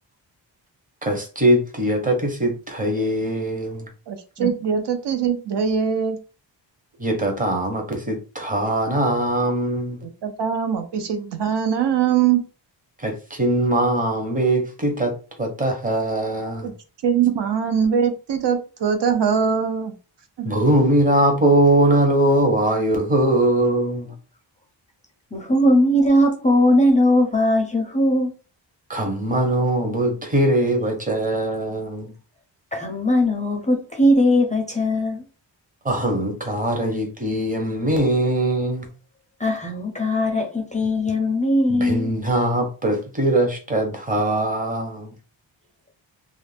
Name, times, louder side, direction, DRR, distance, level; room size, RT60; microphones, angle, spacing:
voice 1, 1.0-3.9 4.4-4.5 7.0-10.0 13.0-15.1 15.4-16.7 20.4-24.1 28.9-32.1 35.8-38.9 41.7-45.1, right 1 dB, 20° right, 0.7 m, -21 dB
voice 2, 4.1-6.2 10.0-12.4 16.6-16.7 17.0-19.9 20.4-20.5, right 7 dB, 65° right, 0.5 m, -22 dB
voice 3, 25.3-28.3 32.7-35.2 39.4-42.1, left 1 dB, 15° left, 0.4 m, -19 dB
2.5 x 2.1 x 3.2 m
wide cardioid pair, 125°, 46 cm